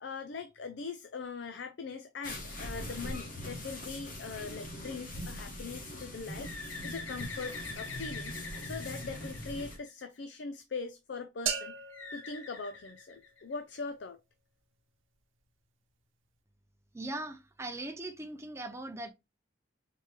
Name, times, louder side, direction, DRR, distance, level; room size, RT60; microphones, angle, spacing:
voice 1, 0.0-6.5 6.8-11.8 12.1-14.2, left 4 dB, 65° left, 0.4 m, -41 dB
sound 1, 2.2-9.8, left 1 dB, 45° left, 1.5 m, -42 dB
Bird, 6.4-10.2 11.9-13.7, left 4 dB, 85° left, 1.2 m, -44 dB
sound 2, 11.5-13.4, right 7 dB, 90° right, 0.8 m, -38 dB
voice 2, 16.9-19.1, right 1 dB, 15° right, 0.5 m, -40 dB
4.3 x 3.2 x 3.3 m
head